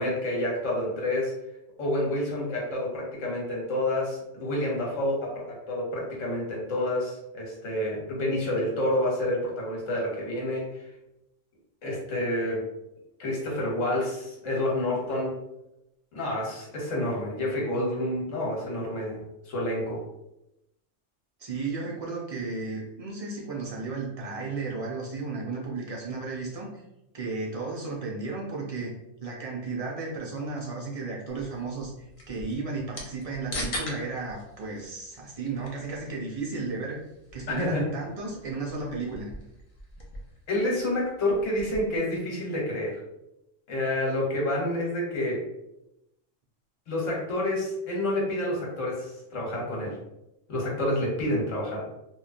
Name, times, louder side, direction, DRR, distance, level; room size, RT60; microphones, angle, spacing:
voice 1, 0.0-1.3 1.8-10.8 11.8-12.6 13.2-15.4 16.1-20.0 37.6-37.8 40.5-43.0 43.7-45.4 46.9-50.0 50.5-51.8, left 1 dB, 80° left, -3 dB, 1.3 m, -29 dB
voice 2, 21.4-26.8 27.1-28.9 29.2-31.9 32.3-37.0 37.3-39.3 49.3-49.4 49.8-49.9, right 3 dB, 60° right, -2 dB, 0.3 m, -34 dB
sound 1, 31.3-42.0, left 1 dB, 50° left, 0.4 m, -42 dB
3.0 x 2.2 x 2.4 m, 0.87 s
omnidirectional pair, 1.3 m